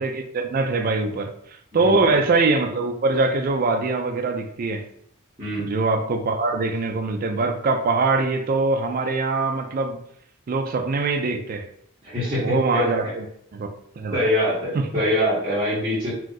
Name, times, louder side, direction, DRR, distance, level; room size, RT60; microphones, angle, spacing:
voice 1, 0.0-1.3 1.7-4.8 5.6-10.0 10.5-11.7 12.4-13.2 13.5-13.7 14.0-14.2 14.7-14.9, right 3 dB, 40° right, 0.3 m, -23 dB
voice 2, 1.7-2.1 5.4-5.7 12.0-13.1 14.1-16.1, left 1 dB, 20° right, 1.0 m, -24 dB
2.6 x 2.4 x 3.8 m
head